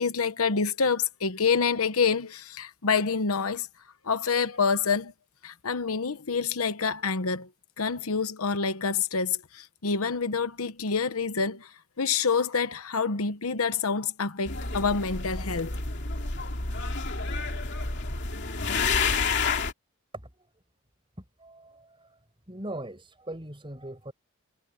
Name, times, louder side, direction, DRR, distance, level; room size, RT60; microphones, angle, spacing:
voice 1, 0.0-3.7 4.0-5.1 5.4-7.5 7.8-15.8, left 5 dB, 80° left, 1.0 m, -27 dB
sound 1, 14.5-19.7, left 4 dB, 55° left, 2.7 m, -29 dB
voice 2, 21.2-22.2 22.5-24.1, right 1 dB, 25° right, 5.7 m, -40 dB
head